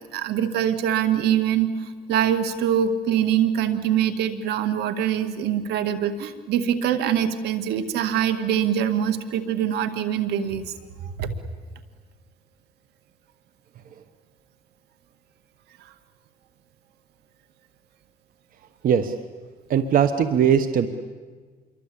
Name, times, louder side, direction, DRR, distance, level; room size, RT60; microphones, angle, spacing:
voice 1, 0.1-10.7 11.0-11.3, right 9 dB, 80° right, 9 dB, 2.1 m, -24 dB
voice 2, 19.7-20.9, right 8 dB, 55° right, 10 dB, 1.3 m, -20 dB
27.0 x 23.0 x 8.7 m, 1.5 s
cardioid pair, 110°, 17 cm